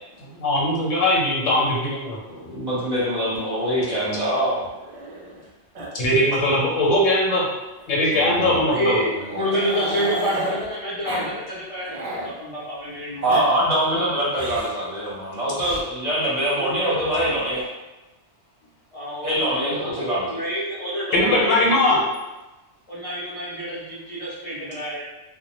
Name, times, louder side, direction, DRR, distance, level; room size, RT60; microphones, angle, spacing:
voice 1, 0.3-2.2 5.9-7.5 7.9-9.0 21.1-22.0, left 1 dB, 80° left, -3 dB, 1.0 m, -20 dB
voice 2, 2.3-4.6 8.1-8.6 13.2-17.7 19.2-20.4, right 1 dB, 40° right, -9 dB, 0.8 m, -24 dB
Growling, 3.6-5.5 5.7-5.9 6.2-6.3 6.7-6.8 7.8-10.6 11.0-11.3 11.6-12.3 13.0-13.4 14.3-14.8 15.5-15.8 17.0-17.6, right 1 dB, 65° right, 0.5 m, -34 dB
voice 3, 8.6-13.4 16.6-17.1 18.9-22.2 22.9-25.0, equal, 45° left, -9 dB, 0.4 m, -28 dB
2.1 x 2.0 x 2.8 m, 1.0 s
omnidirectional pair, 1.3 m